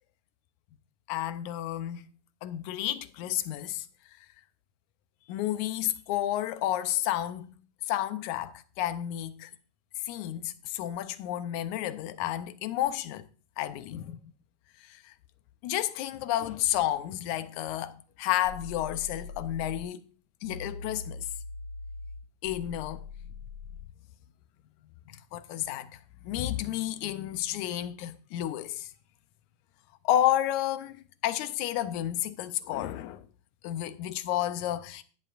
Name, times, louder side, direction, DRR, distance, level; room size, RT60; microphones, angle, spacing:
voice 1, 1.1-2.1 2.4-3.9 5.3-7.5 7.9-9.5 10.1-13.3 13.6-14.2 14.9-15.1 15.6-20.0 20.4-21.3 22.4-23.0 25.1-28.9 30.0-33.2 33.6-35.0, left 12 dB, 80° left, 2.1 m, -31 dB
sound 1, 18.4-19.9 20.4-23.9, left 3 dB, 55° right, 4.1 m, -42 dB
16.0 x 10.0 x 2.5 m
omnidirectional pair, 3.5 m